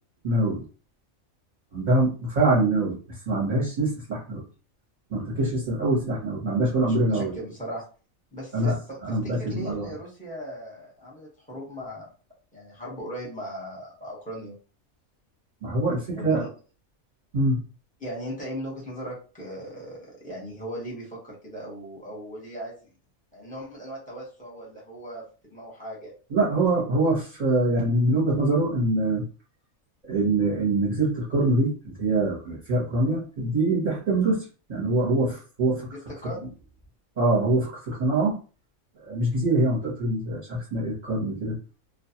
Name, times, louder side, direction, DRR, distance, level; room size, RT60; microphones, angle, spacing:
voice 1, 0.2-0.6 1.7-4.4 5.1-7.3 8.5-10.0 15.6-16.5 17.3-17.6 26.3-29.2 30.0-34.4 34.7-36.3 37.2-38.4 39.0-41.6, right 2 dB, 35° right, -7 dB, 0.9 m, -24 dB
voice 2, 6.8-7.8 8.3-12.1 12.5-14.5 16.1-16.5 18.0-22.7 23.3-25.2 25.5-26.1 35.9-36.5, equal, 5° left, -3 dB, 0.9 m, -38 dB
2.4 x 2.3 x 2.8 m, 0.37 s
omnidirectional pair, 1.4 m